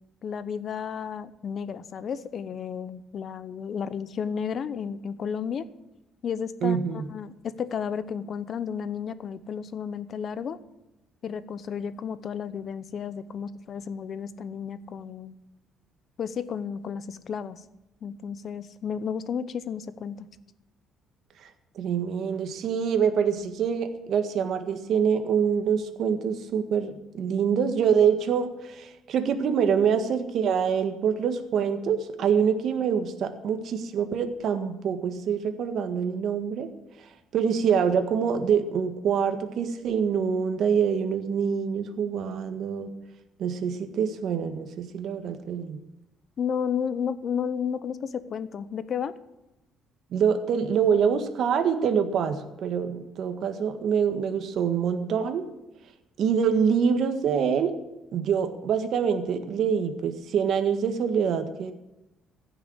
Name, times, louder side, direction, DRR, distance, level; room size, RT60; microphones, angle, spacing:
voice 1, 0.2-5.7 6.2-10.6 11.2-15.3 16.2-17.6 18.0-20.3 46.4-49.1, left 7 dB, 45° left, 15 dB, 0.8 m, -32 dB
voice 2, 6.6-7.1 21.7-36.7 37.3-42.9 43.4-45.8 50.1-55.5 56.2-57.7 58.1-61.7, right 7 dB, 60° right, 7 dB, 1.7 m, -25 dB
15.5 x 6.9 x 9.7 m, 0.95 s
cardioid pair, 130°, 0 cm